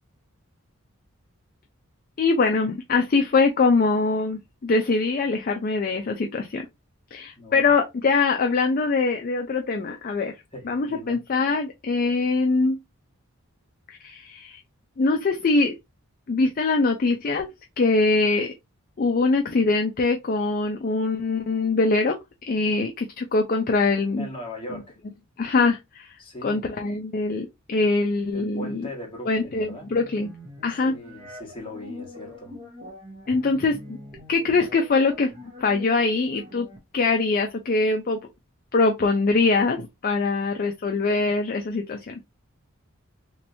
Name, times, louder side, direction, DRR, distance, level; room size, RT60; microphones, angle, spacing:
voice 1, 2.2-6.7 7.1-10.3 10.7-12.8 13.9-14.6 15.0-15.8 16.3-17.5 17.8-18.5 19.0-22.2 22.5-24.3 25.4-28.9 29.3-30.3 30.6-31.0 33.3-34.0 34.3-35.3 35.6-36.7 36.9-38.3 38.7-42.2, left 3 dB, 40° left, 0.4 m, -23 dB
voice 2, 7.4-7.7 10.5-11.2 24.2-25.0 26.2-26.7 28.3-29.9 30.7-32.6, left 1 dB, 25° left, 1.2 m, -39 dB
sound 1, 29.6-36.8, left 1 dB, 30° right, 0.9 m, -44 dB
3.1 x 2.9 x 2.6 m
head